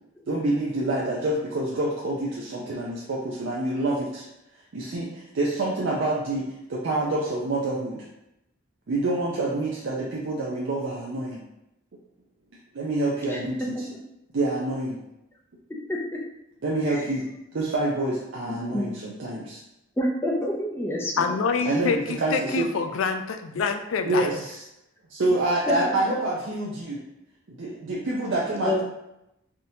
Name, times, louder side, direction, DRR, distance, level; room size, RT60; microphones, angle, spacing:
voice 1, 0.3-4.3 4.7-6.4 6.7-8.1 8.9-11.4 12.7-13.9 14.3-15.0 16.6-17.2 17.5-19.6 21.7-22.7 24.1-24.6 25.1-27.0 27.5-28.8, right 2 dB, 65° right, 0.5 m, -27 dB
voice 2, 15.9-16.2 18.7-18.9 20.0-21.1 25.7-25.9 28.6-28.8, left 1 dB, 10° left, 0.4 m, -27 dB
voice 3, 21.2-24.3, left 5 dB, 75° left, 0.3 m, -26 dB
3.5 x 2.7 x 2.7 m
head